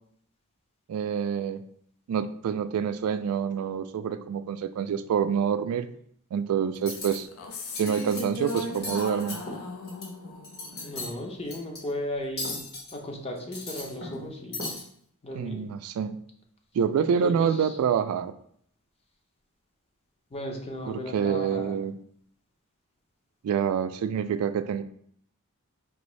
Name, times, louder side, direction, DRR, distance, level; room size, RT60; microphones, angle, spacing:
voice 1, 0.9-1.6 2.1-5.9 6.3-7.3 7.8-9.4 15.3-16.2 16.7-18.3 20.8-21.9 23.4-24.8, right 7 dB, 85° right, 15 dB, 0.3 m, -27 dB
Cutlery silverware, 6.7-7.2 7.6-8.2 8.5-10.1 10.4-11.1 11.5-11.8 12.4-12.9 13.4-14.2 14.5-14.8, left 2 dB, 50° left, 1.3 m, -36 dB
sound 1, 7.2-11.7, left 2 dB, 70° left, 0.6 m, -38 dB
voice 2, 10.8-12.6 12.9-14.7 15.2-15.6 17.1-17.7 20.3-21.8, left 1 dB, 30° left, 1 dB, 0.7 m, -35 dB
4.8 x 2.6 x 3.1 m, 0.64 s
head